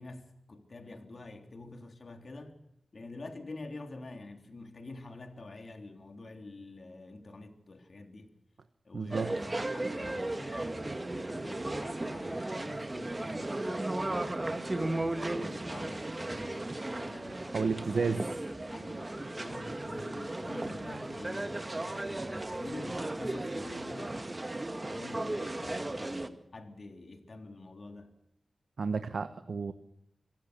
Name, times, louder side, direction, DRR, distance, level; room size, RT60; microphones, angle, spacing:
voice 1, 0.0-2.6 2.9-8.3 8.9-17.4 17.9-18.0 18.7-24.2 24.9-28.2, left 2 dB, 55° left, 3.5 m, -47 dB
voice 2, 8.9-9.3 17.5-18.4 28.8-29.7, right 5 dB, 75° right, 1.1 m, -32 dB
sound 1, 9.1-26.3, right 2 dB, 25° right, 1.9 m, -36 dB
25.5 x 16.5 x 6.9 m
wide cardioid pair, 70°, 0 cm